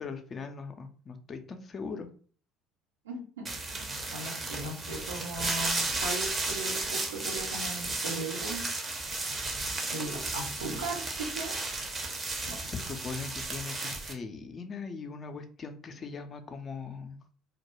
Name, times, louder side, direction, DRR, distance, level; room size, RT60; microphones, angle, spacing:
voice 1, 0.0-2.1 12.6-17.2, left 5 dB, 35° left, 7 dB, 0.4 m, -40 dB
voice 2, 3.0-8.7 9.9-11.6 12.4-12.7, right 2 dB, 75° right, 1 dB, 0.5 m, -38 dB
sound 1, 3.5-14.1, right 2 dB, 30° right, 0.5 m, -34 dB
2.1 x 2.1 x 2.9 m, 0.44 s
figure-of-eight pair, 60°, 0 cm